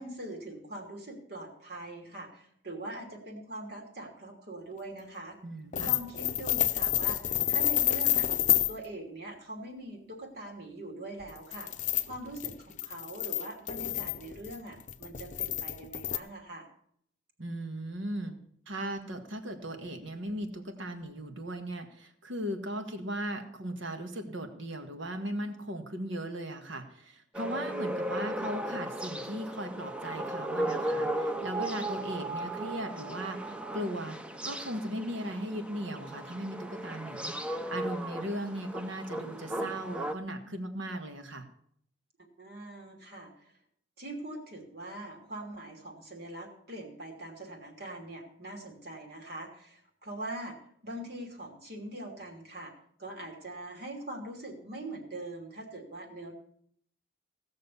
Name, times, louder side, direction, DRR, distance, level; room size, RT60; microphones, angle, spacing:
voice 1, 0.0-5.4 5.8-8.3 8.7-11.7 12.0-16.7 42.4-43.5 44.0-50.6 50.8-52.7 53.0-56.3, right 1 dB, 55° right, 2 dB, 2.9 m, -42 dB
voice 2, 5.4-5.9 17.4-18.4 18.7-34.2 34.4-41.5, right 1 dB, 80° right, 6 dB, 1.7 m, -37 dB
sound 1, 5.7-8.7 11.2-16.2, left 13 dB, 40° left, 0.6 m, -29 dB
sound 2, 27.3-40.1, right 1 dB, 5° right, 0.6 m, -36 dB
17.0 x 6.5 x 7.0 m, 0.67 s
head